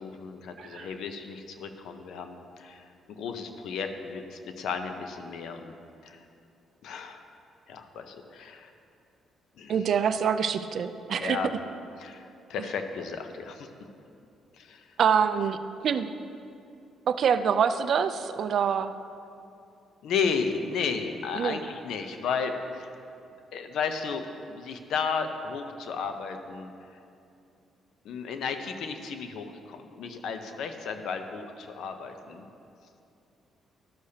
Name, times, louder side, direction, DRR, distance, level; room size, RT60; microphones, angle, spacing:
voice 1, 0.0-5.7 6.0-6.2 6.8-7.2 7.7-8.7 9.5-9.9 11.2-11.5 12.0-13.7 14.5-14.9 20.0-22.9 23.5-24.2 24.5-27.0 28.0-32.5, left 5 dB, 75° left, 7 dB, 0.6 m, -34 dB
voice 2, 0.6-0.9 9.7-11.4 15.0-16.1 17.1-18.9 21.4-21.6, right 7 dB, 60° right, 11 dB, 0.4 m, -25 dB
12.5 x 6.5 x 2.8 m, 2.6 s
cardioid pair, 90°, 0 cm